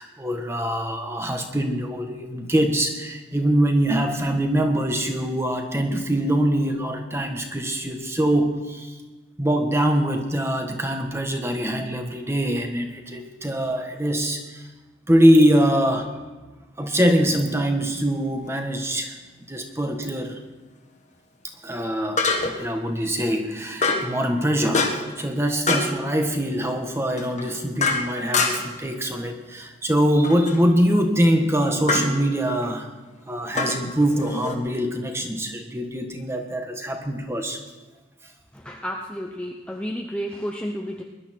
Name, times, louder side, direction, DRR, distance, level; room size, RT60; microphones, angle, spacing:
voice 1, 0.0-8.9 9.4-14.7 15.1-16.1 16.8-19.2 19.5-20.4 21.6-32.9 33.3-37.6, equal, 15° right, 4 dB, 1.4 m, -23 dB
sound 1, 18.5-18.6 22.2-22.7 23.8-24.1 24.7-25.2 25.7-26.0 27.2-28.8 30.2-30.6 31.9-32.1 33.5-34.5, left 3 dB, 35° left, 1.6 m, -25 dB
voice 2, 38.5-41.0, equal, 5° left, 1 dB, 0.8 m, -31 dB
20.5 x 11.5 x 4.4 m, 1.3 s
head